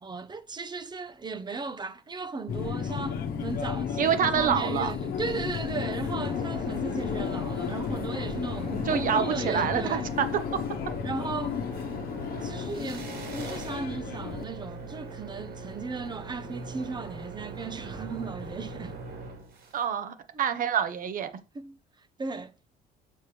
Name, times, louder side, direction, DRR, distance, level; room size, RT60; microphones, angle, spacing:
voice 1, 0.0-10.2 11.0-11.6 12.4-19.0 21.5-22.5, right 4 dB, 25° right, 0.8 m, -36 dB
Subway metro underground, 2.5-14.4, left 7 dB, 60° left, 1.1 m, -33 dB
voice 2, 4.0-4.9 8.9-10.3 10.5-10.6 19.7-21.3, right 8 dB, 55° right, 1.1 m, -27 dB
sound 1, 5.2-19.8, right 3 dB, 75° right, 4.9 m, -41 dB
6.7 x 6.5 x 3.4 m
cardioid pair, 110°, 17 cm